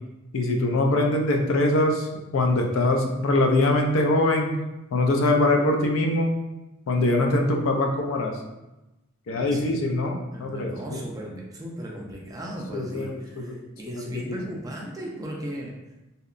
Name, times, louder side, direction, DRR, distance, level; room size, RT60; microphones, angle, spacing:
voice 1, 0.3-4.5 4.9-6.3 6.9-8.3 9.3-11.0 12.7-13.6 13.9-14.5, left 2 dB, 65° left, 3 dB, 0.4 m, -23 dB
voice 2, 9.3-9.7 10.3-15.7, right 1 dB, 15° right, -2 dB, 0.4 m, -37 dB
2.8 x 2.0 x 2.4 m, 0.98 s
head